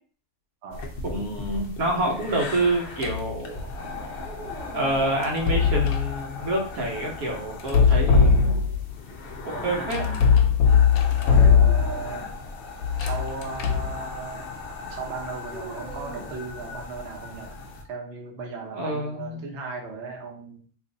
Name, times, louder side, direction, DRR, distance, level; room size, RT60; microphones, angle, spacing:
sound 1, 0.7-17.8, left 3 dB, 55° left, 0.6 m, -38 dB
voice 1, 1.0-3.7 4.7-8.6 9.4-10.2 18.7-19.5, right 1 dB, 75° right, -1 dB, 1.4 m, -27 dB
sound 2, 3.0-3.3 5.2-6.1 7.6-8.9 9.9-12.1 12.8-14.0, left 6 dB, 85° left, 1.1 m, -19 dB
sound 3, 4.2-5.8 7.4-8.6 11.4-12.2 15.5-17.1, right 1 dB, ahead, 0.9 m, -43 dB
voice 2, 9.5-10.1 11.2-12.4 13.0-14.5 14.9-20.6, right 4 dB, 55° right, 0 dB, 1.0 m, -37 dB
3.0 x 2.5 x 3.9 m, 0.43 s
omnidirectional pair, 1.5 m